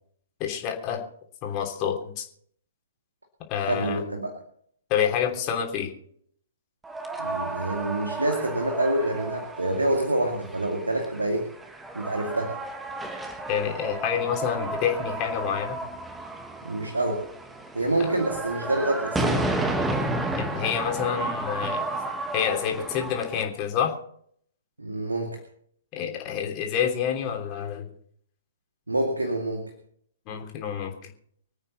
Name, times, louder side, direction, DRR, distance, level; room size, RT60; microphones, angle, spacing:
voice 1, 0.4-1.0 1.4-2.3 3.5-4.0 4.9-5.9 13.5-15.8 20.4-21.9 22.3-23.9 25.9-27.9 30.3-30.9, left 8 dB, 35° left, 2 dB, 3.2 m, -28 dB
voice 2, 3.6-4.3 7.2-11.5 11.9-12.6 16.6-17.2 17.7-19.5 24.8-25.4 28.9-29.6, right 1 dB, 85° right, 3 dB, 2.3 m, -27 dB
sound 1, 6.8-23.4, right 2 dB, 10° right, 1.7 m, -32 dB
26.0 x 9.0 x 4.1 m, 0.65 s
figure-of-eight pair, 115°, 0 cm